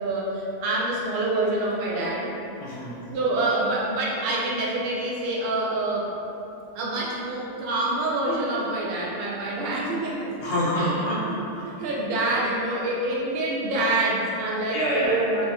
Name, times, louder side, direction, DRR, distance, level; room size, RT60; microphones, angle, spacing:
voice 1, 0.0-2.3 3.1-6.1 6.7-10.3 10.8-10.9 11.2-11.3 11.8-15.4, right 2 dB, 60° right, -4 dB, 0.7 m, -26 dB
voice 2, 2.6-3.0 10.4-11.7 14.7-15.3, equal, 55° left, -8 dB, 0.9 m, -26 dB
3.3 x 2.7 x 2.2 m, 2.8 s
omnidirectional pair, 1.4 m